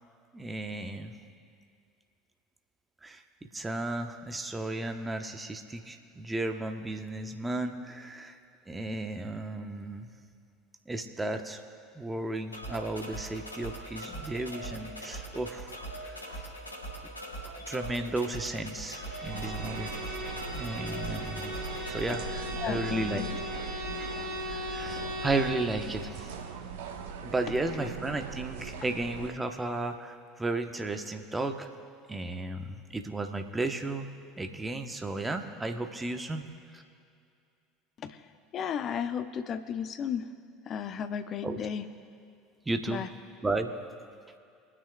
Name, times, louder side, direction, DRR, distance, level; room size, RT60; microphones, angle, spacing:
voice 1, 0.3-1.1 3.0-8.4 8.7-10.1 10.9-11.6 11.9-15.7 16.0-16.5 17.5-19.9 20.5-21.5 21.9-23.2 24.5-26.3 27.2-31.7 32.1-34.1 34.4-36.4 36.7-36.8 41.4-41.6 42.6-43.1 43.4-43.7, right 2 dB, 15° right, 5 dB, 1.1 m, -34 dB
sound 1, 12.5-22.1, right 1 dB, 85° left, 1.4 m, -41 dB
Bowed string instrument, 19.0-25.7, left 1 dB, 30° right, 3.2 m, -38 dB
sound 2, 19.2-29.3, right 6 dB, 65° right, 1.0 m, -40 dB
voice 2, 22.6-23.4 27.8-27.9 38.0-38.2 38.5-40.3 40.7-41.8 42.9-43.1, left 7 dB, 40° left, 11 dB, 0.7 m, -34 dB
24.0 x 9.7 x 2.4 m, 2.4 s
figure-of-eight pair, 70°, 0 cm